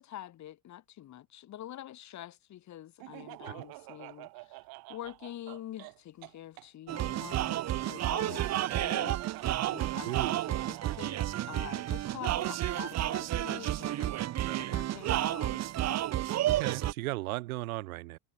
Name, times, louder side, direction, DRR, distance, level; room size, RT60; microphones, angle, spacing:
voice 1, 0.0-4.6 4.9-11.2 11.5-14.2 14.6-16.0, left 12 dB, 40° left, 2.1 m, -46 dB
Laughter, 3.0-6.7 8.2-11.1, right 23 dB, 60° right, 1.7 m, -47 dB
sound 1, 6.9-16.9, right 13 dB, 40° right, 1.0 m, -31 dB
voice 2, 8.3-8.6 10.0-10.4 14.5-14.8 16.5-18.2, right 19 dB, 85° right, 1.3 m, -37 dB
supercardioid pair, 95°, 41 cm